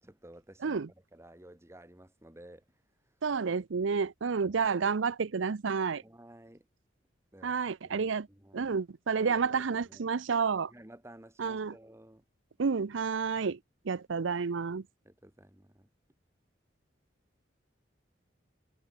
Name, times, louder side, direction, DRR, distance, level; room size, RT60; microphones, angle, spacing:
voice 1, 0.0-2.6 4.4-4.7 6.0-6.6 7.3-7.6 7.8-8.8 9.2-10.1 10.7-12.2 15.0-15.9, right 1 dB, 15° right, 1.9 m, -54 dB
voice 2, 3.2-6.0 7.4-8.3 8.5-10.7 11.4-11.7 12.6-13.6 13.9-14.8, right 5 dB, 85° right, 0.6 m, -30 dB
head